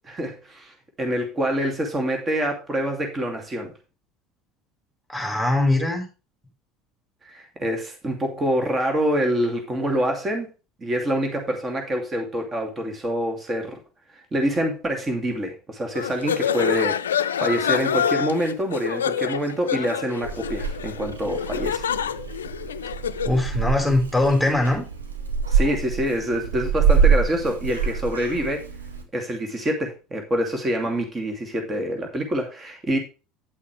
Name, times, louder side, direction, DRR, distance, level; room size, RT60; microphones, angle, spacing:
voice 1, 0.0-3.7 7.3-10.5 10.8-13.8 14.3-17.1 17.4-21.9 25.5-28.7 29.1-33.0, equal, 25° right, 3 dB, 2.6 m, -26 dB
voice 2, 5.1-6.0 23.2-24.8, left 2 dB, ahead, 2 dB, 4.9 m, -21 dB
sound 1, 15.9-23.4, left 8 dB, 85° left, 0.4 m, -27 dB
Purr / Meow, 20.2-29.0, right 6 dB, 90° right, 1.6 m, -25 dB
10.0 x 8.3 x 3.3 m, 0.30 s
hypercardioid pair, 70°, 0 cm